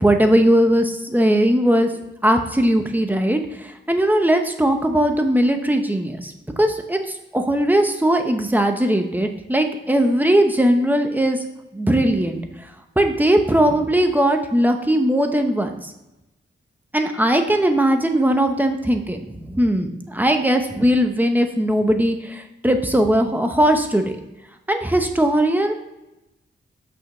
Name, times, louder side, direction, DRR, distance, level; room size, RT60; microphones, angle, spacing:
voice 1, 0.0-1.9 2.2-6.3 6.6-7.0 7.3-11.4 11.7-12.4 13.0-15.9 16.9-24.0 24.7-25.7, right 1 dB, 10° right, 5 dB, 0.9 m, -19 dB
6.4 x 5.1 x 6.4 m, 0.97 s
wide cardioid pair, 125°, 21 cm